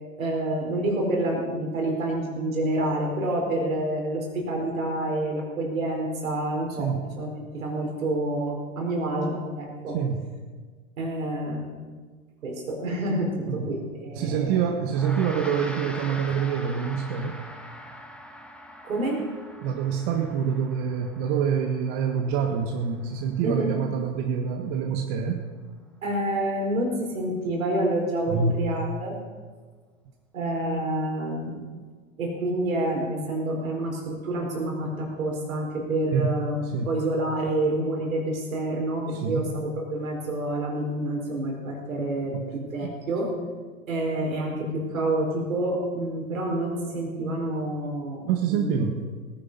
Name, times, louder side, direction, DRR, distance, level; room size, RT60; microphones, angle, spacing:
voice 1, 0.2-10.0 11.0-11.7 12.4-14.6 18.8-19.3 23.4-23.8 26.0-29.2 30.3-31.6 32.2-43.3 43.9-48.8, right 1 dB, 85° right, 0 dB, 4.6 m, -28 dB
voice 2, 6.8-7.1 9.9-10.2 13.5-13.7 14.1-17.4 19.6-25.4 28.3-28.6 36.1-36.4 36.7-36.9 39.1-39.5 42.3-42.5 42.8-42.9 48.3-49.0, right 7 dB, 55° right, 3 dB, 1.6 m, -26 dB
Gong, 14.9-24.4, left 1 dB, 5° left, 1.4 m, -43 dB
18.0 x 10.0 x 5.5 m, 1.5 s
hypercardioid pair, 100°, 40 cm